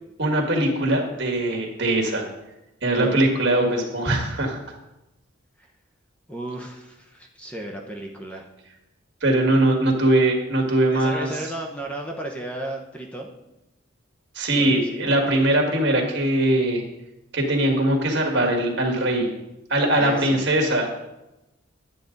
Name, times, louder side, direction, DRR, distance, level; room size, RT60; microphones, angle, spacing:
voice 1, 0.2-2.3 2.8-4.6 9.2-11.3 14.4-16.8 17.3-19.3 19.7-20.9, right 1 dB, 60° right, 2 dB, 1.9 m, -21 dB
voice 2, 6.3-8.5 10.9-13.3 14.5-15.1 20.0-20.5, right 1 dB, 5° left, 1 dB, 0.9 m, -34 dB
10.5 x 8.5 x 3.9 m, 0.94 s
head